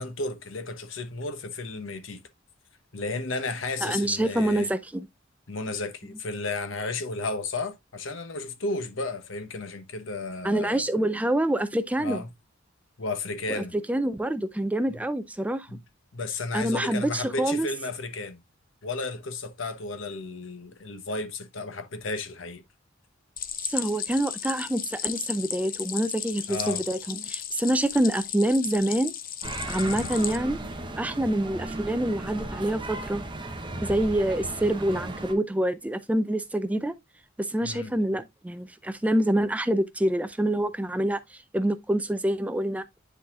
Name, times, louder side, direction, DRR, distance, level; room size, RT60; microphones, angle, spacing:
voice 1, 0.0-2.2 2.9-4.7 5.5-10.8 12.0-12.3 13.0-13.7 14.9-15.0 15.7-15.8 16.1-18.4 18.8-22.6 26.5-26.8 29.8-30.1 37.6-37.9, left 3 dB, 75° left, 1.0 m, -33 dB
voice 2, 3.8-5.1 10.4-12.2 13.5-15.7 16.5-17.7 23.6-29.1 29.7-30.7 31.0-33.2 33.8-36.9 37.4-42.8, right 1 dB, 5° right, 0.4 m, -26 dB
Stream, 23.4-30.4, left 10 dB, 45° left, 0.6 m, -35 dB
sound 1, 29.4-35.3, right 2 dB, 25° right, 0.9 m, -36 dB
10.0 x 4.0 x 2.4 m
head